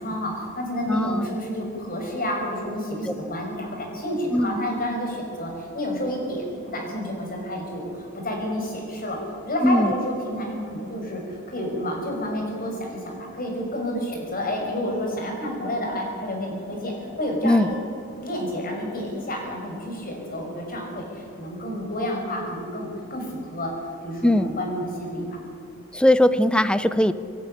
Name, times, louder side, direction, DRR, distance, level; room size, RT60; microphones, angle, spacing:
voice 1, 0.0-6.4 6.7-9.2 9.4-17.7 18.1-23.7 24.0-25.3, equal, 40° left, 0 dB, 5.8 m, -30 dB
voice 2, 0.9-1.3 4.3-4.6 9.6-9.9 17.4-17.7 24.2-24.5 25.9-27.1, left 1 dB, 5° left, 14 dB, 0.6 m, -19 dB
25.5 x 11.5 x 9.9 m, 2.7 s
head